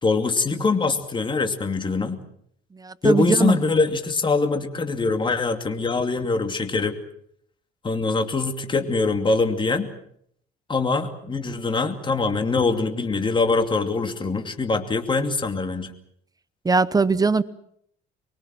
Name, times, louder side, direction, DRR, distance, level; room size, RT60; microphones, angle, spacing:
voice 1, 0.0-2.2 3.0-7.0 7.8-9.9 10.7-15.9, left 3 dB, 25° left, 2.6 m, -23 dB
voice 2, 2.8-3.6 16.6-17.4, right 4 dB, 20° right, 0.9 m, -20 dB
24.5 x 22.5 x 7.6 m
cardioid pair, 105°, 19 cm